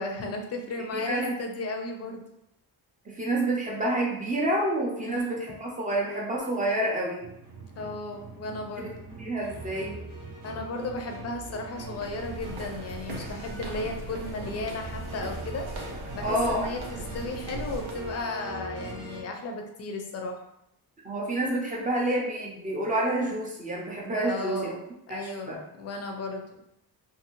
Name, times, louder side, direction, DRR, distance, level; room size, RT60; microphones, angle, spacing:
voice 1, 0.0-2.2 4.9-5.4 7.8-9.1 10.4-15.7 16.1-20.4 24.2-24.8 25.1-26.4, left 2 dB, 40° left, 3 dB, 0.4 m, -35 dB
voice 2, 0.9-1.3 3.1-7.3 8.8-8.9 9.2-10.0 16.2-16.7 21.0-24.7 25.1-25.2 25.5-25.6, right 1 dB, 20° right, -2 dB, 0.4 m, -28 dB
sound 1, 7.2-19.2, right 2 dB, 55° right, 0.7 m, -41 dB
sound 2, 11.7-18.2, right 1 dB, 90° right, 0.8 m, -40 dB
2.5 x 2.5 x 2.9 m, 0.81 s
wide cardioid pair, 175°, 38 cm